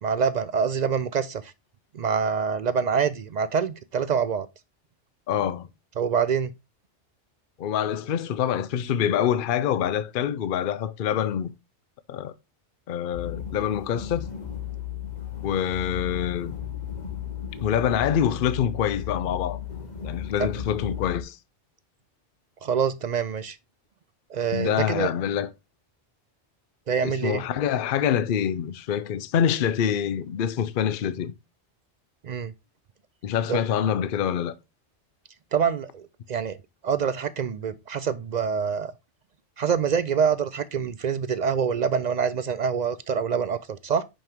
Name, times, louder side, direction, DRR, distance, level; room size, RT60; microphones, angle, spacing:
voice 1, 0.0-1.5 1.9-4.5 6.0-6.5 20.4-20.5 22.6-23.6 24.3-25.1 26.9-27.4 32.2-32.5 33.5-33.6 35.5-36.6 36.8-38.9 39.6-44.0, right 6 dB, 60° right, 0.4 m, -25 dB
voice 2, 5.3-5.7 7.6-11.5 12.1-12.3 12.9-14.3 15.4-16.5 17.6-19.6 20.0-21.4 24.5-25.5 27.0-31.3 33.2-34.5, left 9 dB, 55° left, 0.7 m, -26 dB
sound 1, 13.1-21.2, left 9 dB, 40° left, 1.3 m, -35 dB
5.5 x 5.5 x 3.5 m
omnidirectional pair, 1.2 m